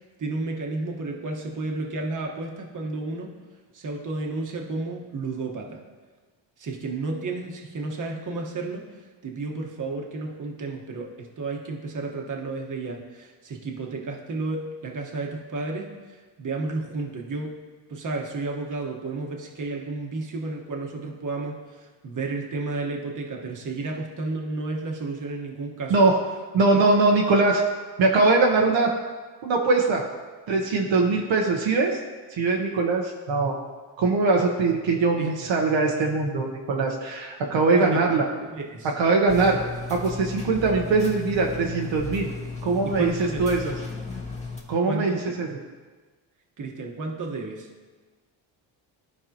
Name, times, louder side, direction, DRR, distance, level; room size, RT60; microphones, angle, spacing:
voice 1, 0.2-3.3 3.7-5.8 6.6-8.9 9.2-17.5 17.9-25.9 35.2-35.3 37.7-38.0 38.4-38.9 42.8-43.4 44.9-45.1 46.6-47.7, right 3 dB, 40° right, 0 dB, 1.3 m, -32 dB
voice 2, 26.5-27.6 28.0-28.9 29.4-30.0 30.5-32.0 32.3-33.6 34.0-38.3 38.8-39.6 39.9-42.3 42.6-43.1 43.4-43.7 44.7-45.6, right 3 dB, 65° right, 0 dB, 1.1 m, -22 dB
sound 1, 39.3-44.6, left 4 dB, 15° left, 1.6 m, -35 dB
12.5 x 4.7 x 2.9 m, 1.3 s
cardioid pair, 85°, 48 cm